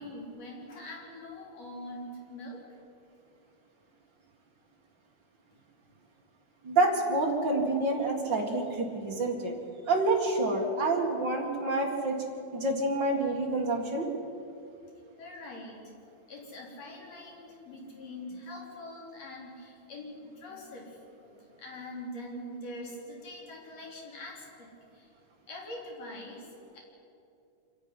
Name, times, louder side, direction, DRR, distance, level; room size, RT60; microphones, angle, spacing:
voice 1, 0.0-2.7 15.2-15.9 16.3-25.1 25.5-26.5 26.7-26.8, left 1 dB, 35° left, -1 dB, 4.4 m, -43 dB
voice 2, 6.6-9.5 9.9-12.2 12.5-14.1, right 2 dB, 50° right, 1 dB, 1.4 m, -28 dB
26.5 x 11.5 x 9.8 m, 2.7 s
omnidirectional pair, 5.2 m